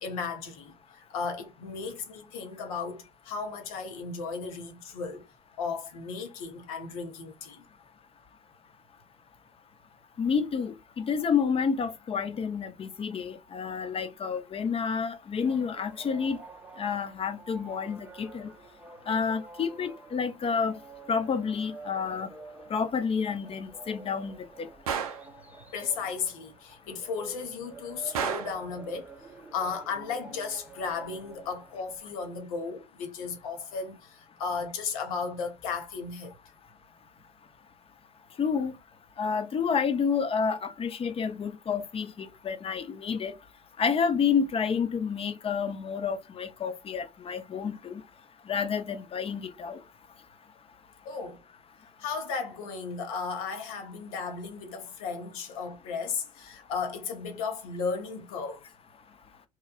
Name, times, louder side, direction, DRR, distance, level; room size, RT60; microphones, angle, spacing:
voice 1, 0.0-5.2 5.6-7.6 25.7-29.1 29.5-36.3 51.0-51.4 52.0-58.6, left 5 dB, 80° left, 0.8 m, -35 dB
voice 2, 10.2-16.4 16.8-18.5 19.1-20.7 21.1-22.3 22.7-24.7 38.4-38.7 39.2-43.3 43.8-48.0 48.5-49.8, left 6 dB, 30° left, 0.6 m, -29 dB
sound 1, 15.3-32.3, right 3 dB, 10° right, 0.6 m, -49 dB
Gunshot gunfire, 24.9-25.3 28.1-28.6, right 7 dB, 90° right, 0.4 m, -31 dB
3.0 x 2.3 x 2.3 m
hypercardioid pair, 65°, 18 cm